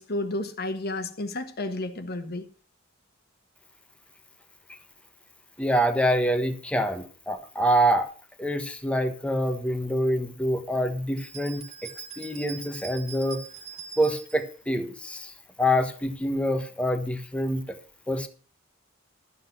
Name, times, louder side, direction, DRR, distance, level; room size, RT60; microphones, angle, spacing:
voice 1, 0.0-2.5, left 2 dB, 50° left, 1.4 m, -31 dB
voice 2, 5.6-8.1 8.4-11.9 12.2-13.4 14.0-15.3 15.6-17.8 18.1-18.3, equal, 5° left, 1.3 m, -26 dB
sound 1, 11.2-14.5, right 6 dB, 35° right, 1.9 m, -42 dB
13.0 x 7.9 x 6.0 m
head